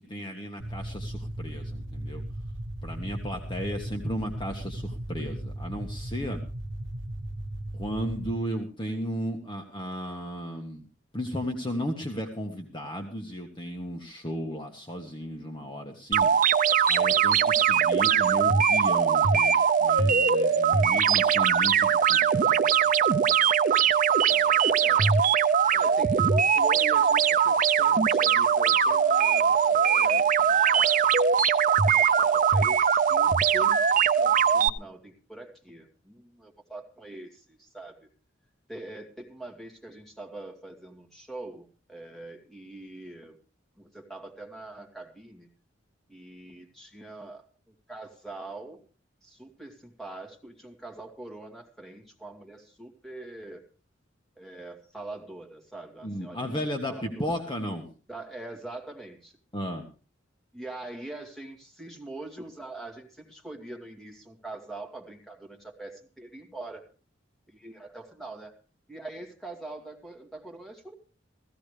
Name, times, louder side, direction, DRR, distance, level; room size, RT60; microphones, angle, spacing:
voice 1, 0.0-2.2 2.8-6.4 7.7-10.8 11.1-16.3 16.9-22.8 56.0-57.9 59.5-59.9, equal, 25° left, 2 dB, 1.5 m, -35 dB
sound 1, 0.6-8.3, right 1 dB, 70° right, 1.1 m, -36 dB
sound 2, 16.1-34.7, right 7 dB, 45° right, 0.6 m, -21 dB
voice 2, 24.3-25.2 25.7-31.2 31.9-33.8 34.1-38.1 38.7-43.4 43.8-45.5 46.1-48.8 49.2-53.6 54.4-56.5 56.9-57.5 58.1-59.3 60.5-66.8 67.5-68.6 68.9-70.9, right 2 dB, ahead, 2 dB, 2.4 m, -43 dB
16.0 x 15.5 x 3.3 m, 0.37 s
head